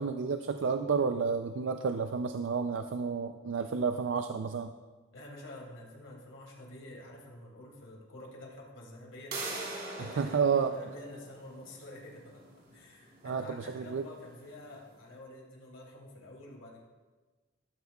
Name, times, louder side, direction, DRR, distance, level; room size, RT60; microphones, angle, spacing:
voice 1, 0.0-4.7 10.2-10.7 13.2-14.1, right 5 dB, 70° right, 7 dB, 0.4 m, -30 dB
voice 2, 5.1-9.4 10.0-16.8, left 1 dB, 85° left, -1 dB, 2.4 m, -49 dB
sound 1, 9.3-14.9, right 2 dB, 55° right, 3.0 m, -44 dB
13.0 x 12.5 x 2.3 m, 1.3 s
head